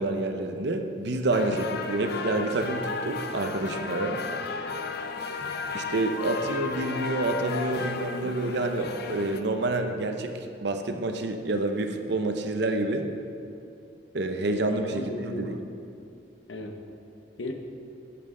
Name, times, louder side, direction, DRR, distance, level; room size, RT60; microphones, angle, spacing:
voice 1, 0.0-4.2 5.7-13.1 14.1-15.6, right 2 dB, 65° right, 5 dB, 0.8 m, -28 dB
sound 1, 1.3-9.4, left 4 dB, 60° left, 0.6 m, -34 dB
voice 2, 14.9-15.6 16.5-16.9 17.4-17.5, left 2 dB, 90° left, 4 dB, 1.0 m, -36 dB
11.0 x 8.7 x 3.8 m, 2.5 s
head